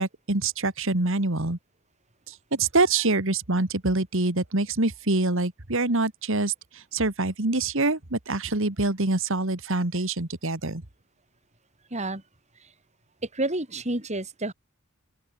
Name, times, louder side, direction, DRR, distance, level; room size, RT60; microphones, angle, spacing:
voice 1, 0.0-1.6 2.3-10.8, right 2 dB, 60° right, 2.3 m, -25 dB
voice 2, 11.9-12.2 13.3-14.5, right 2 dB, 30° right, 4.4 m, -29 dB
open air
head